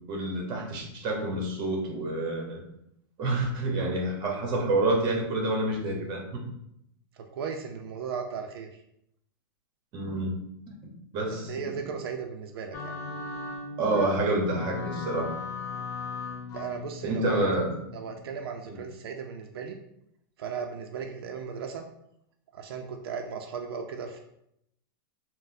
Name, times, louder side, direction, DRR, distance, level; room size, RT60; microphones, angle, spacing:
voice 1, 0.1-2.6 3.2-6.2 9.9-10.4 10.7-10.8 11.1-11.6 13.8-15.4 17.0-17.8, right 2 dB, 35° right, 0 dB, 0.9 m, -28 dB
voice 2, 7.3-8.7 11.3-12.9 16.5-17.4 17.9-19.8 20.4-21.8 22.5-24.2, right 6 dB, 85° right, 3 dB, 0.4 m, -36 dB
sound 1, 12.7-18.5, left 4 dB, 30° left, 0.3 m, -38 dB
3.9 x 2.0 x 2.6 m, 0.77 s
supercardioid pair, 145°, 12 cm